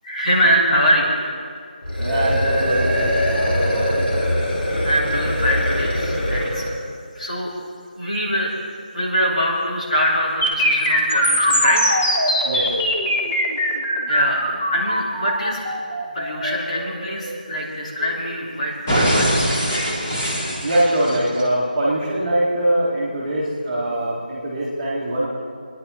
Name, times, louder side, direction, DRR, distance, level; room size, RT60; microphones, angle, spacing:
voice 1, 0.0-1.1 3.0-3.1 4.8-6.7 7.1-7.5 8.0-8.5 8.9-12.0 14.1-14.4 14.7-15.6 16.1-19.9, equal, 50° left, -4 dB, 3.2 m, -23 dB
sound 1, 1.8-6.8, equal, 80° left, 2.7 m, -22 dB
voice 2, 2.0-4.1 12.4-12.7 20.6-25.3, right 1 dB, 10° right, -9 dB, 1.7 m, -22 dB
sound 2, 10.4-18.4 18.9-21.4, equal, 15° left, 1.3 m, -22 dB
21.0 x 10.5 x 4.1 m, 2.2 s
figure-of-eight pair, 180°, 5 cm